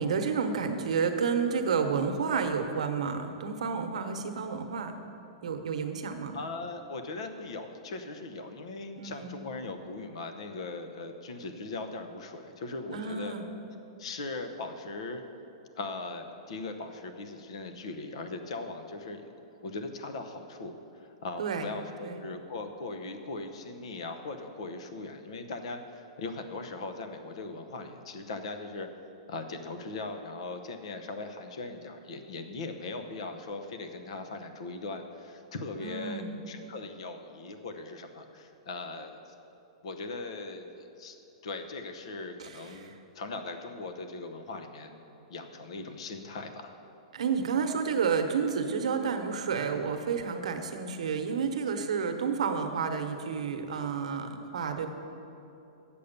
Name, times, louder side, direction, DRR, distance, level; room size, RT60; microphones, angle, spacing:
voice 1, 0.0-4.9 5.4-6.4 9.0-9.3 12.9-13.4 21.4-21.7 22.0-22.2 35.8-36.4 42.4-42.9 47.1-54.9, right 6 dB, 85° right, 5 dB, 1.0 m, -30 dB
voice 2, 6.3-13.4 14.0-15.2 15.8-19.2 19.6-28.9 29.3-39.3 39.8-41.2 41.4-45.0 45.3-46.8, left 3 dB, 60° left, 7 dB, 0.9 m, -39 dB
8.5 x 7.0 x 6.6 m, 2.9 s
supercardioid pair, 170°, 3 cm